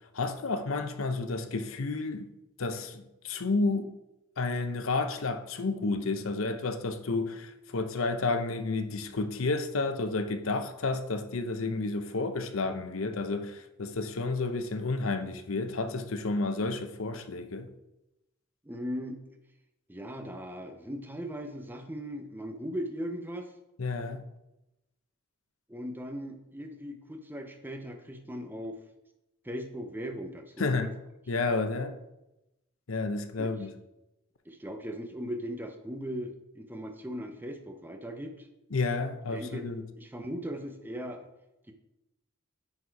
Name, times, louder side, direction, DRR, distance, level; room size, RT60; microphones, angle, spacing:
voice 1, 0.1-2.3 2.6-3.9 4.4-17.7 23.8-24.2 30.6-30.9 31.3-32.0 32.9-33.7 38.7-39.8, left 3 dB, 80° left, 0.8 m, -31 dB
voice 2, 18.6-19.2 19.9-23.5 25.7-28.8 29.4-30.9 33.4-33.5 34.5-38.5 39.3-39.7 40.0-41.3, equal, 10° right, 0.7 m, -38 dB
9.9 x 4.2 x 4.6 m
head